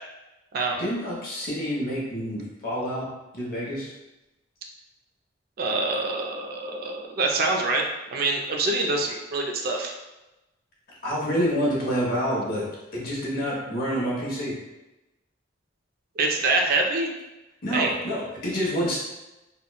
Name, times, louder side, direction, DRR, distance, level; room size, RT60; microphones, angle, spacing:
voice 1, 0.8-3.1 3.3-3.9 11.0-12.6 12.9-14.5 17.6-19.0, equal, 50° left, -5 dB, 0.8 m, -27 dB
voice 2, 5.6-7.8 8.1-9.9 16.2-17.1 17.7-17.9, right 3 dB, 50° right, 2 dB, 0.3 m, -25 dB
2.9 x 2.1 x 2.2 m, 1.0 s
head